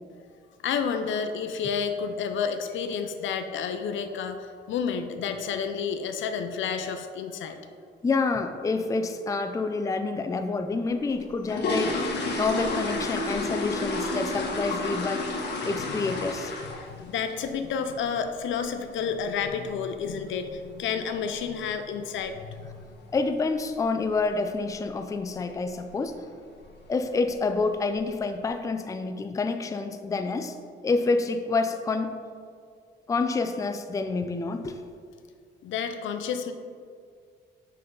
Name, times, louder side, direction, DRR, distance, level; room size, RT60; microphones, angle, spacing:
voice 1, 0.6-7.6 16.8-23.0 35.6-36.5, left 6 dB, 75° left, 8 dB, 0.6 m, -30 dB
voice 2, 8.0-12.0 12.4-15.3 15.6-16.5 23.1-26.2 26.9-30.6 30.8-32.1 33.1-34.8, left 3 dB, 15° left, 7 dB, 0.4 m, -28 dB
sound 1, 11.1-17.0 17.3-17.6 17.9-18.0 18.4-18.5 18.9-19.1 19.4-19.5 20.1-20.2 20.4-20.6 21.1-21.4 21.7-21.8 22.2-22.4 22.7-22.8 23.2-23.3 24.0-24.3 24.6-24.9 25.3-25.4 25.8-25.9 26.7-26.8 27.2-27.7 28.2-28.3, left 2 dB, 60° left, 1.1 m, -31 dB
5.5 x 5.4 x 3.8 m, 2.1 s
cardioid pair, 90°, 20 cm